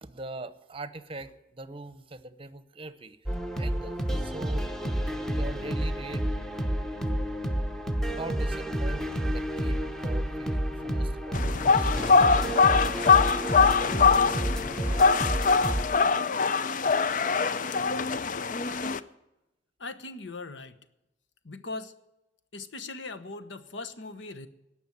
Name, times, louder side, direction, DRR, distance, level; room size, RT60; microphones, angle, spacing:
voice 1, 0.0-3.2 3.6-4.6 5.3-6.3 8.2-12.1 16.9-17.0, right 2 dB, 30° right, 13 dB, 0.8 m, -42 dB
sound 1, 3.3-15.8, right 1 dB, ahead, 0.8 m, -30 dB
sound 2, 11.3-19.0, left 5 dB, 45° left, 0.5 m, -23 dB
voice 2, 19.8-20.8 21.4-21.9 22.5-24.5, left 3 dB, 80° left, 12 dB, 1.1 m, -39 dB
18.0 x 6.1 x 9.7 m, 0.91 s
head